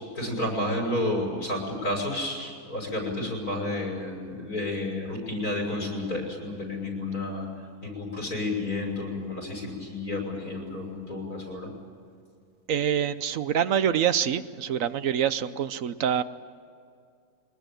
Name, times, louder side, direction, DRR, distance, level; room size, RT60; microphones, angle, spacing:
voice 1, 0.1-7.5 7.8-11.7, left 2 dB, 80° left, 2 dB, 6.6 m, -31 dB
voice 2, 12.7-16.2, right 9 dB, 65° right, 13 dB, 1.1 m, -25 dB
23.0 x 20.0 x 9.0 m, 2.3 s
omnidirectional pair, 1.5 m